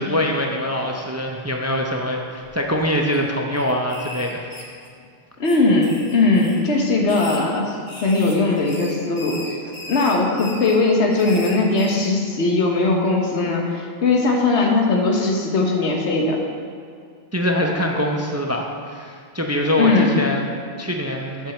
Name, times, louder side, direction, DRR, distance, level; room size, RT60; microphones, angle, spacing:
voice 1, 0.0-4.5 17.3-21.5, equal, 20° right, 1 dB, 0.4 m, -24 dB
sound 1, 2.4-3.2 3.5-5.1 5.4-6.6 7.0-12.1, left 1 dB, 25° left, 1.1 m, -38 dB
voice 2, 5.4-9.4 9.9-16.4 19.8-20.1, left 3 dB, 85° left, 0 dB, 1.4 m, -19 dB
7.4 x 5.3 x 6.5 m, 2.2 s
omnidirectional pair, 1.1 m